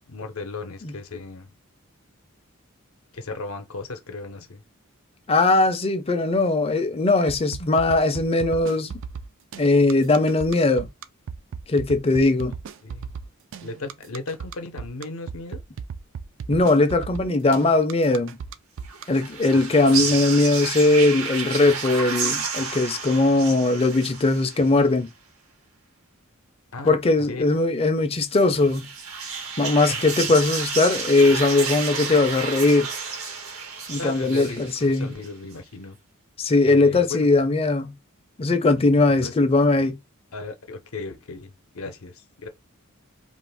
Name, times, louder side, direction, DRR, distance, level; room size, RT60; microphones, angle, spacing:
voice 1, 0.1-1.5 3.1-4.6 12.8-13.1 13.6-15.6 19.5-19.6 26.7-27.0 27.3-27.4 29.9-30.3 33.9-36.0 36.6-37.3 39.2-39.3 40.3-42.5, left 3 dB, 70° left, 0.7 m, -36 dB
voice 2, 5.3-9.0 9.6-10.9 11.7-12.5 16.5-18.4 19.1-25.1 26.9-28.9 29.6-32.9 33.9-35.1 36.4-37.9 38.4-40.0, left 2 dB, 25° left, 0.5 m, -20 dB
sound 1, 7.3-19.0, right 6 dB, 60° right, 0.3 m, -36 dB
sound 2, 18.8-24.8 28.3-35.3, right 5 dB, 75° right, 0.9 m, -31 dB
2.5 x 2.4 x 3.4 m
head